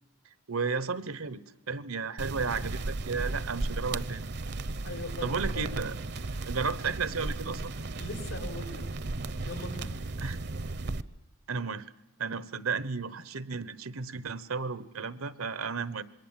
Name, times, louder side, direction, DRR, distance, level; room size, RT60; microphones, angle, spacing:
voice 1, 0.5-1.4 1.7-4.2 5.2-6.0 6.5-7.7 10.2-10.4 11.5-11.9 12.2-16.0, right 5 dB, 80° right, 16 dB, 1.1 m, -33 dB
sound 1, 2.2-11.0, right 2 dB, 55° right, 0.8 m, -35 dB
voice 2, 4.8-5.7 8.0-8.8 9.4-9.9, left 2 dB, 85° left, 5 dB, 4.7 m, -40 dB
26.5 x 21.5 x 7.4 m, 0.96 s
head